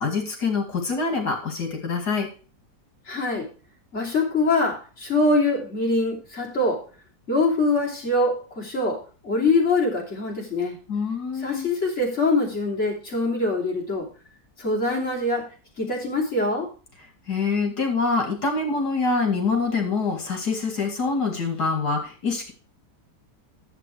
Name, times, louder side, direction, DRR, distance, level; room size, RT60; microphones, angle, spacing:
voice 1, 0.0-2.3 10.9-11.7 17.3-22.5, left 4 dB, 70° left, 3 dB, 2.9 m, -25 dB
voice 2, 3.1-3.5 3.9-6.8 7.3-10.8 11.4-14.1 14.6-15.5 15.8-16.7, left 2 dB, 40° left, -3 dB, 3.6 m, -24 dB
11.0 x 7.8 x 4.5 m, 0.36 s
omnidirectional pair, 1.8 m